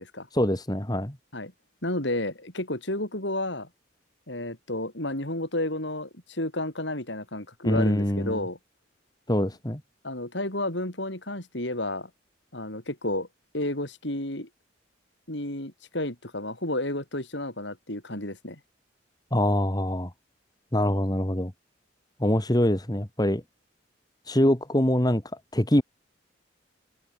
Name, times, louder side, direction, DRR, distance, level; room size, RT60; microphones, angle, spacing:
voice 1, 0.3-1.2 7.6-8.4 9.3-9.8 19.3-20.1 20.7-21.5 22.2-23.4 24.3-25.2 25.5-25.8, left 1 dB, 20° left, 2.1 m, -24 dB
voice 2, 1.8-3.7 4.3-8.6 10.0-12.1 12.5-13.3 13.5-14.5 15.3-18.6, left 1 dB, 65° left, 6.7 m, -31 dB
open air
head